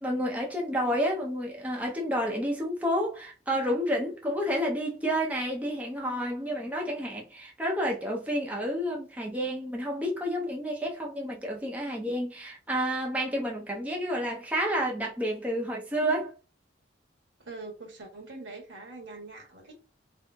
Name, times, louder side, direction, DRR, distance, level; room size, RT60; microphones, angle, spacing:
voice 1, 0.0-16.3, equal, 10° right, 0.6 m, -30 dB
voice 2, 17.4-19.8, right 3 dB, 75° right, 1.1 m, -43 dB
3.5 x 2.8 x 2.3 m
head